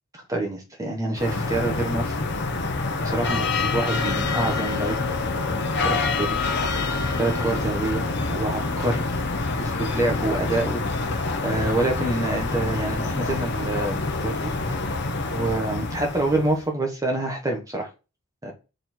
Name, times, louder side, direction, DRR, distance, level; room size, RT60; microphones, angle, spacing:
voice 1, 0.1-2.1 3.0-5.0 5.8-6.9 7.2-9.1 9.6-11.2 11.4-14.5 15.3-17.9 18.4-18.5, right 2 dB, 15° right, 1 dB, 1.4 m, -27 dB
sound 1, 1.2-16.6, left 3 dB, 50° left, 1.0 m, -26 dB
7.7 x 4.2 x 4.5 m, 0.31 s
head